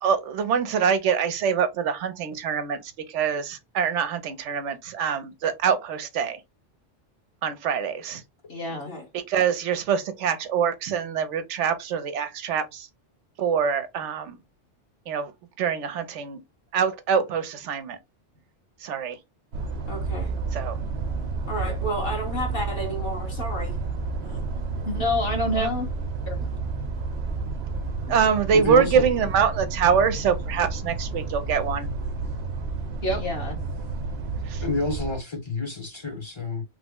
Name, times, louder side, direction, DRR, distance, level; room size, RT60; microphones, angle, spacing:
voice 1, 0.0-6.4 7.4-8.2 9.3-12.9 13.4-14.4 15.1-15.3 15.6-16.4 16.7-18.0 18.8-19.2 20.5-20.8 28.1-31.9 34.5-34.6, right 7 dB, 85° right, 0.9 m, -24 dB
voice 2, 8.5-9.1 19.9-20.3 21.5-23.8 24.2-24.4 24.7-25.9 26.3-26.5 33.0-33.6, left 1 dB, 50° left, 1.4 m, -29 dB
sound 1, 19.5-35.2, right 3 dB, 65° right, 0.9 m, -31 dB
voice 3, 28.5-29.0 34.6-36.6, left 3 dB, 25° left, 1.0 m, -29 dB
3.3 x 2.0 x 3.6 m
omnidirectional pair, 1.2 m